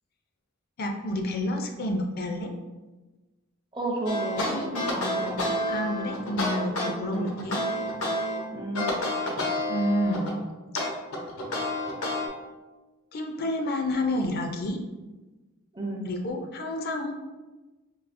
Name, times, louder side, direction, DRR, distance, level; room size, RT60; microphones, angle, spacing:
voice 1, 0.8-2.5 5.7-7.6 9.7-10.4 13.1-14.8 16.0-17.1, left 1 dB, 45° left, 2 dB, 0.4 m, -29 dB
voice 2, 3.7-5.5 7.1-7.3 8.5-8.9 15.7-16.1, right 2 dB, 20° right, -1 dB, 0.6 m, -32 dB
sound 1, 4.1-8.4 8.7-10.4 10.8-12.3, left 1 dB, 90° left, 0.8 m, -29 dB
4.7 x 2.8 x 2.5 m, 1.2 s
head